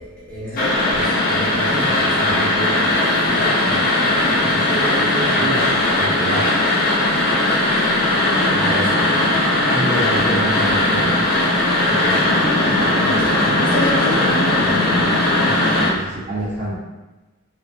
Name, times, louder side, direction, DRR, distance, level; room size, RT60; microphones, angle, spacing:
voice 1, 0.0-3.0 3.3-3.8 4.1-5.8 8.5-8.9 9.7-9.8 11.9-12.3 12.6-15.2, equal, 5° left, -11 dB, 0.8 m, -29 dB
sound 1, 0.6-15.9, left 1 dB, 40° left, 0.5 m, -18 dB
voice 2, 5.4-6.5 9.7-11.2 15.4-16.8, right 1 dB, 35° right, -9 dB, 0.5 m, -27 dB
2.6 x 2.0 x 2.4 m, 1.1 s
head